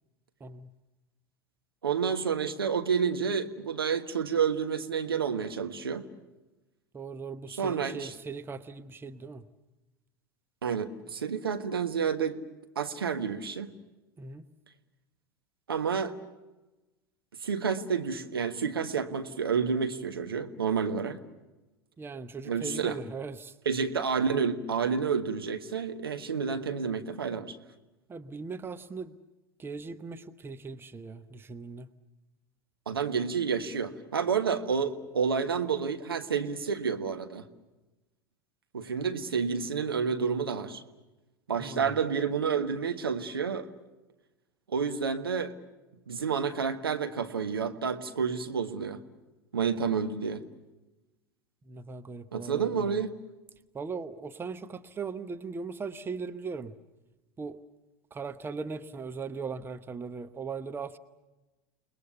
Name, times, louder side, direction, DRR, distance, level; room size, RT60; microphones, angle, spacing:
voice 1, 0.4-0.7 6.9-9.4 14.2-14.4 22.0-23.5 28.1-29.2 29.6-31.9 41.6-41.9 51.7-53.0 53.7-56.7 57.4-57.6 58.1-61.0, right 4 dB, 20° right, 12 dB, 1.0 m, -39 dB
voice 2, 1.8-6.1 7.6-8.1 10.6-12.4 12.7-13.7 15.7-16.2 17.4-21.2 22.4-23.0 23.6-27.5 32.9-37.4 38.7-40.8 41.5-43.7 44.7-45.5 46.1-49.0 49.5-50.4 52.3-53.1, right 6 dB, 75° right, 7 dB, 1.4 m, -29 dB
29.5 x 20.5 x 6.9 m, 1.1 s
figure-of-eight pair, 80°, 12 cm